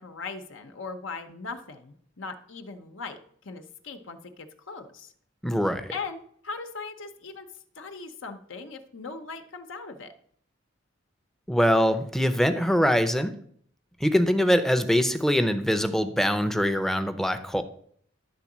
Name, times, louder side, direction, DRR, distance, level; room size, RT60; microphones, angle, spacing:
voice 1, 0.0-5.1 5.9-7.5 7.8-10.1, left 4 dB, 70° left, 6 dB, 0.9 m, -39 dB
voice 2, 5.4-5.9 11.5-13.3 14.0-17.6, equal, ahead, 10 dB, 0.6 m, -23 dB
11.5 x 3.8 x 7.2 m, 0.63 s
head